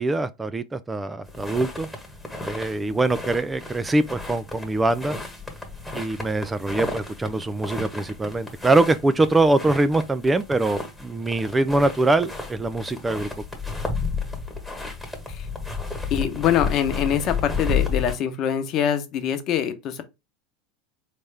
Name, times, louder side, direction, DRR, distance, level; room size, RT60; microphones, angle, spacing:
voice 1, 0.0-1.9 2.4-5.2 5.9-13.3, right 2 dB, 15° right, 0.4 m, -23 dB
sound 1, 1.3-18.2, left 4 dB, 5° left, 1.4 m, -32 dB
voice 2, 16.1-20.0, left 9 dB, 45° left, 0.9 m, -24 dB
4.1 x 3.4 x 3.3 m
hypercardioid pair, 90°, 0 cm